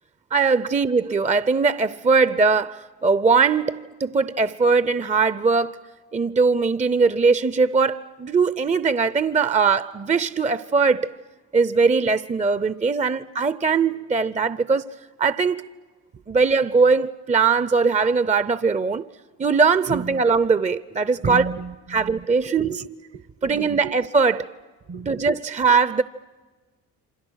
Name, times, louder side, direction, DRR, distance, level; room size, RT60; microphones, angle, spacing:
voice 1, 0.3-5.8 6.1-11.1 11.5-15.7 16.3-19.1 19.4-21.5 21.9-22.8 23.4-24.5 25.1-26.0, right 4 dB, 20° right, 0.7 m, -20 dB
voice 2, 19.9-20.2 21.2-23.9 24.9-25.4, right 5 dB, 40° right, 0.9 m, -33 dB
28.0 x 26.0 x 6.4 m
supercardioid pair, 60°, 38 cm